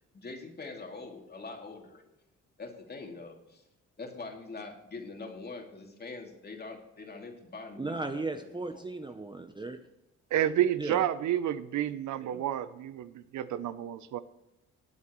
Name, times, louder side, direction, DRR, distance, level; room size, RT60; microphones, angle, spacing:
voice 1, 0.1-2.0 2.6-3.4 4.0-8.9, left 3 dB, 30° left, 2.7 m, -43 dB
voice 2, 7.8-9.8 10.8-11.0, right 3 dB, 15° right, 0.8 m, -36 dB
voice 3, 10.3-14.2, right 11 dB, 75° right, 0.8 m, -30 dB
19.5 x 8.1 x 3.1 m
cardioid pair, 90°, 30 cm